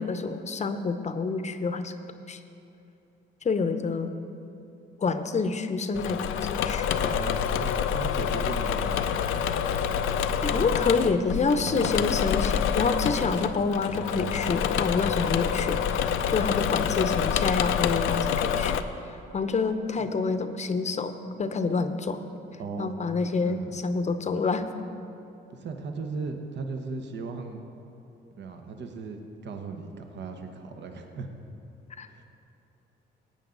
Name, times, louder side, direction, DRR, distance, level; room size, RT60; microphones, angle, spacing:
voice 1, 0.0-1.9 2.3-2.4 3.4-4.1 5.0-6.2 6.6-6.9 10.4-18.8 19.3-21.1 21.4-22.2 22.8-24.7 32.0-32.1, left 4 dB, 35° left, 9 dB, 0.7 m, -27 dB
Engine / Mechanisms, 5.9-18.8, left 8 dB, 85° left, 0.5 m, -27 dB
voice 2, 7.0-9.5 10.5-10.7 14.1-14.4 20.0-20.1 22.6-23.0 23.4-23.7 25.5-27.6 28.4-31.3 32.1-32.2, right 4 dB, 65° right, 4 dB, 1.1 m, -37 dB
17.0 x 9.1 x 3.9 m, 2.9 s
cardioid pair, 90°, 20 cm